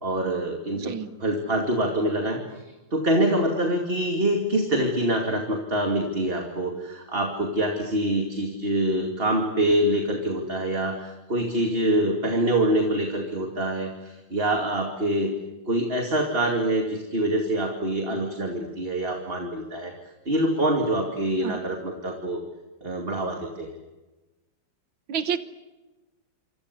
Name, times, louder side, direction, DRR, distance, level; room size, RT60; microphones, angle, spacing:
voice 1, 0.0-0.9 1.2-2.4 2.9-15.3 15.7-19.9 20.3-22.4 22.8-23.7, right 1 dB, 25° right, 2 dB, 2.7 m, -25 dB
voice 2, 0.7-1.1 21.4-21.6 25.1-25.4, right 8 dB, 75° right, 10 dB, 1.9 m, -28 dB
27.0 x 26.5 x 8.4 m, 1.1 s
omnidirectional pair, 2.2 m